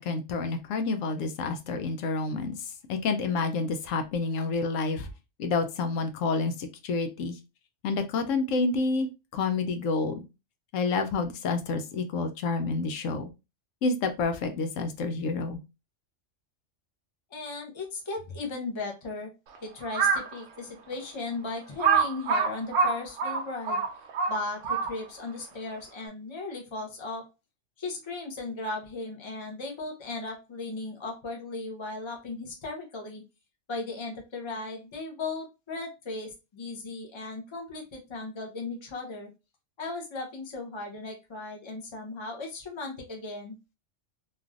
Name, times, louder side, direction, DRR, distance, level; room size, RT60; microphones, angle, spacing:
voice 1, 0.0-2.6 2.9-5.1 5.4-7.3 7.8-10.2 10.7-13.3 13.8-15.6, left 3 dB, 85° left, 7 dB, 1.0 m, -29 dB
voice 2, 17.3-19.3 19.6-23.8 24.3-27.3 27.8-33.2 33.7-39.3 39.8-43.6, left 3 dB, 30° left, 1 dB, 0.7 m, -36 dB
Crow, 19.8-20.3 20.9-21.0 21.8-25.2, right 5 dB, 85° right, 0.9 m, -25 dB
3.2 x 2.5 x 2.4 m, 0.26 s
omnidirectional pair, 1.3 m